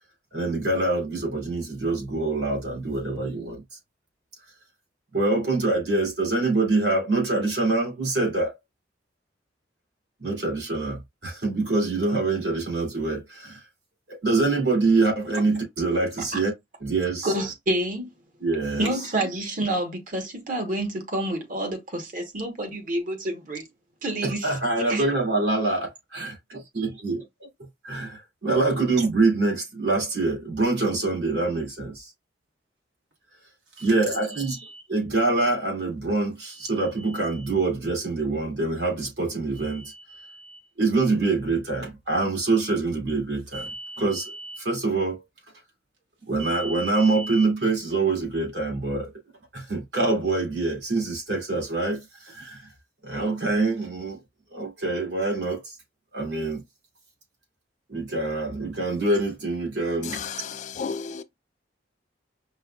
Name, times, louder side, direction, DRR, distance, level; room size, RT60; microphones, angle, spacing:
voice 1, 0.3-3.8 5.1-8.6 10.2-13.6 14.1-16.5 16.8-17.3 18.4-19.3 24.2-26.3 26.7-27.2 27.8-32.1 33.8-34.6 34.9-39.8 40.8-43.7 44.0-44.3 44.6-45.2 46.3-49.1 49.5-52.7 53.0-54.2 54.5-55.8 56.1-56.6 57.9-60.2, right 3 dB, 75° right, 2.2 m, -25 dB
voice 2, 17.2-18.1 18.8-23.6 24.0-24.5 24.9-25.0, right 1 dB, 50° right, 1.0 m, -28 dB
sound 1, 33.7-34.8 36.4-37.5 39.5-40.6 43.5-44.6 46.4-47.5, right 2 dB, 90° right, 1.3 m, -40 dB
voice 3, 60.1-61.2, left 6 dB, 40° left, 0.4 m, -33 dB
5.4 x 2.2 x 2.3 m
head